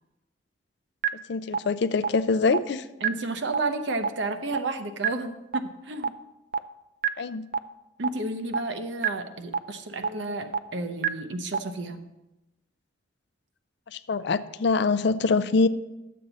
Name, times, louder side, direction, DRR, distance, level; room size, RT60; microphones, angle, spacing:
sound 1, 1.0-1.1 1.5-1.6 2.0-2.1 2.5-2.6 3.0-3.1 3.5-3.6 4.0-4.1 4.5-4.6 5.0-5.1 5.5-5.6 6.0-6.1 6.5-6.6 7.0-7.1 7.5-7.6 8.0-8.1 8.5-8.6 9.0-9.1 9.5-9.6 10.0-10.1 10.5-10.6 11.0-11.1 11.5-11.6, right 7 dB, 50° right, 0.4 m, -24 dB
voice 1, 1.3-2.8 7.2-7.4 13.9-15.7, left 4 dB, 60° left, 13 dB, 0.4 m, -24 dB
voice 2, 3.0-6.1 8.0-12.0, right 2 dB, 70° right, 7 dB, 0.8 m, -32 dB
11.0 x 7.5 x 4.0 m, 0.97 s
head